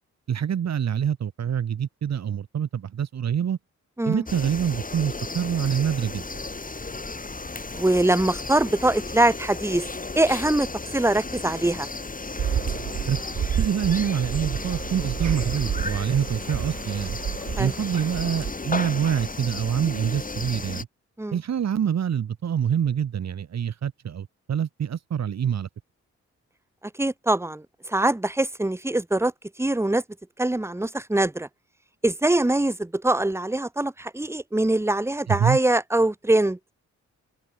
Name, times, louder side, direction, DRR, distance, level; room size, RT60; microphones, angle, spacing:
voice 1, 0.3-3.6 4.0-6.2 13.1-13.2 13.6-17.2 17.6-20.9 21.3-25.7 35.3-35.6, right 8 dB, 65° right, 1.4 m, -26 dB
sound 1, 4.3-20.8, left 3 dB, 30° left, 5.7 m, -34 dB
voice 2, 7.7-9.9 10.1-10.7 10.9-11.9 17.6-17.7 21.2-21.3 27.0-27.6 27.9-29.3 29.6-30.0 30.4-31.5 32.0-36.6, right 1 dB, 10° right, 1.5 m, -23 dB
sound 2, 12.4-18.5, right 9 dB, 80° right, 4.8 m, -30 dB
open air
cardioid pair, 75°, 29 cm